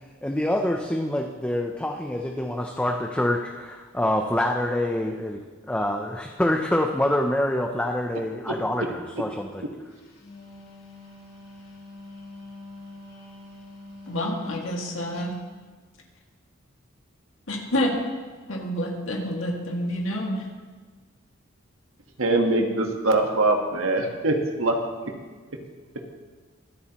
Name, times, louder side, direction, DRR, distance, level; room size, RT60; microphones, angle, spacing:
voice 1, 0.2-5.4 5.7-9.6, left 1 dB, 5° left, 2 dB, 0.5 m, -26 dB
Wind instrument woodwind instrument, 10.0-15.4, left 2 dB, 50° left, 3.0 m, -44 dB
voice 2, 14.1-15.3 17.5-17.9 18.5-20.5, equal, 75° left, 0 dB, 2.1 m, -28 dB
voice 3, 22.2-24.7, right 2 dB, 85° right, 3 dB, 1.4 m, -22 dB
23.5 x 8.5 x 3.0 m, 1.4 s
head